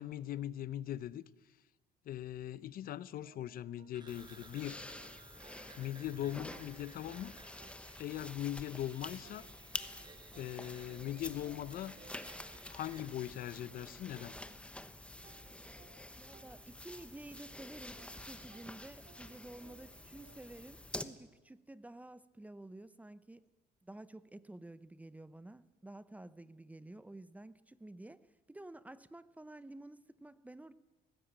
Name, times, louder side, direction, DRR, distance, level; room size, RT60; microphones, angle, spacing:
voice 1, 0.0-1.6 2.0-4.8 5.8-7.3 8.0-9.5 10.4-11.9 12.7-14.3, left 12 dB, 60° left, 0.7 m, -40 dB
sound 1, 3.2-6.1 6.5-14.9 15.2-20.7, right 6 dB, 60° right, 3.4 m, -65 dB
sound 2, 3.9-13.1, right 4 dB, 25° right, 1.7 m, -59 dB
sound 3, 4.1-21.0, left 1 dB, 5° left, 1.0 m, -48 dB
voice 2, 16.2-23.5 23.8-28.2 28.5-30.7, right 2 dB, 10° right, 0.6 m, -51 dB
18.5 x 16.0 x 8.9 m
cardioid pair, 110°, 17 cm